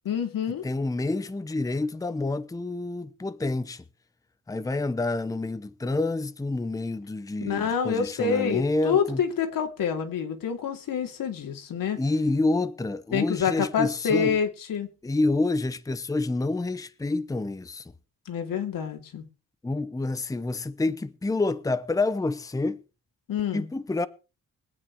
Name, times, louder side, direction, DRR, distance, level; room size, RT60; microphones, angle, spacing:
voice 1, 0.1-0.6 7.4-12.0 13.1-14.9 18.3-19.2 23.3-23.7, left 7 dB, 85° left, 2.8 m, -27 dB
voice 2, 0.6-3.8 4.5-9.2 11.9-14.4 15.0-17.9 19.6-22.8 23.5-24.1, left 2 dB, 10° left, 0.8 m, -28 dB
22.0 x 9.2 x 4.7 m
wide cardioid pair, 130°, 33 cm